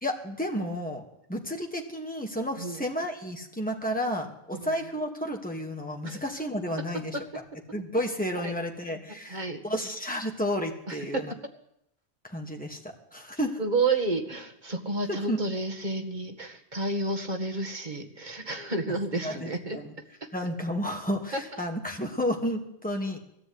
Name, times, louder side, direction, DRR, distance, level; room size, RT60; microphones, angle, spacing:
voice 1, 0.0-1.0 1.3-7.2 7.7-11.3 12.2-12.8 13.1-13.6 15.1-15.4 19.2-19.9 20.3-23.2, equal, 10° left, 1 dB, 2.6 m, -31 dB
voice 2, 9.3-9.6 10.9-11.2 13.6-19.9 20.2-20.3 21.3-21.4, right 3 dB, 45° right, 5 dB, 2.1 m, -31 dB
20.0 x 14.0 x 9.8 m, 0.80 s
omnidirectional pair, 1.1 m